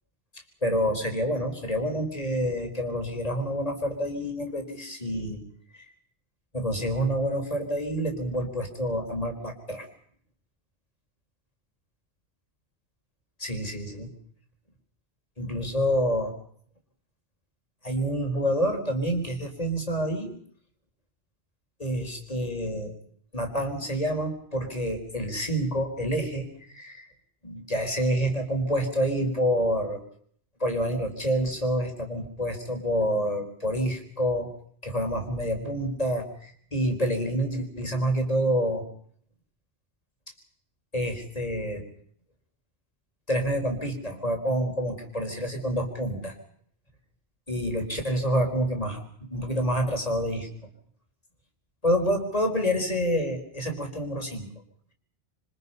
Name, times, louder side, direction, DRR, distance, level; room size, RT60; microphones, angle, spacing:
voice 1, 0.6-5.4 5.7-5.9 6.5-9.9 13.4-14.1 15.4-16.3 17.8-20.3 21.8-22.9 23.3-27.1 27.4-30.0 30.6-34.5 34.8-38.8 40.9-41.8 43.3-46.3 47.5-50.5 51.8-54.5, equal, 35° left, 3 dB, 4.3 m, -28 dB
27.0 x 25.0 x 5.6 m, 0.62 s
omnidirectional pair, 1.1 m